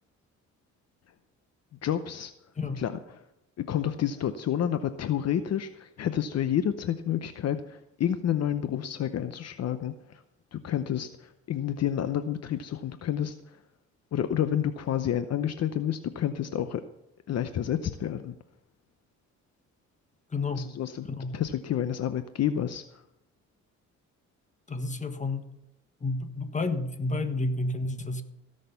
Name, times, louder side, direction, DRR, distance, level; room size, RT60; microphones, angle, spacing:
voice 1, 1.7-2.3 2.8-3.0 3.7-10.2 10.5-13.6 14.1-16.8 17.3-18.4 20.6-21.1 21.3-23.0, left 10 dB, 60° left, 10 dB, 0.8 m, -29 dB
voice 2, 20.3-20.7 21.0-21.4 24.7-25.5 26.0-28.2, left 2 dB, 25° left, 8 dB, 1.5 m, -30 dB
16.5 x 6.6 x 6.9 m, 0.85 s
cardioid pair, 90°, 30 cm